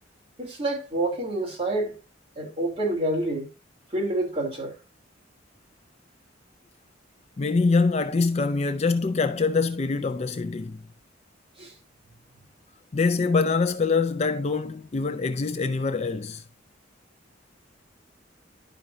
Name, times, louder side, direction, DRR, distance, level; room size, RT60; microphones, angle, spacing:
voice 1, 0.4-2.0 2.4-3.5 3.9-4.7 11.6-11.7, right 1 dB, 30° right, 3.0 m, -28 dB
voice 2, 7.4-10.8 12.9-16.4, left 4 dB, 35° left, 0.4 m, -24 dB
11.0 x 5.2 x 2.7 m
head